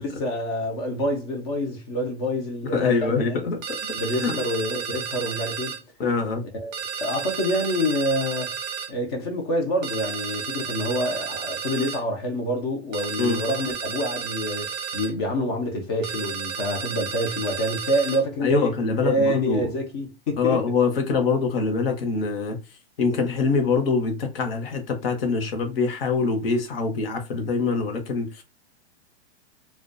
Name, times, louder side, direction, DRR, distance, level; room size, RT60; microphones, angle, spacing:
voice 1, 0.0-3.4 3.9-5.8 6.5-6.7 7.0-8.5 8.9-18.7 19.0-20.6, equal, 25° left, 0.4 m, -27 dB
voice 2, 2.7-4.0 4.2-4.4 6.0-6.4 13.2-13.4 18.4-19.7 20.4-22.6 23.0-28.4, left 4 dB, 55° left, 0.8 m, -24 dB
sound 1, 3.6-5.8 6.7-8.9 9.8-12.0 12.9-15.1 16.0-18.2, right 7 dB, 40° right, 0.4 m, -32 dB
2.3 x 2.2 x 2.5 m
hypercardioid pair, 160°, 35 cm